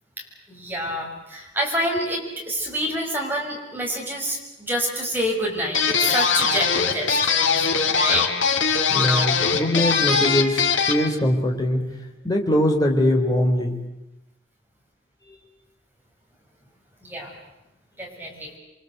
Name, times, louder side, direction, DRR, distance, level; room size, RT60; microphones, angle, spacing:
voice 1, 0.5-8.3 17.0-17.3 18.0-18.5, equal, 10° right, -1 dB, 6.7 m, -27 dB
sound 1, 5.7-11.1, left 5 dB, 80° left, 3.1 m, -21 dB
voice 2, 8.9-11.9 12.2-13.8, left 1 dB, 20° left, 1 dB, 4.2 m, -22 dB
29.0 x 24.5 x 8.1 m, 0.96 s
head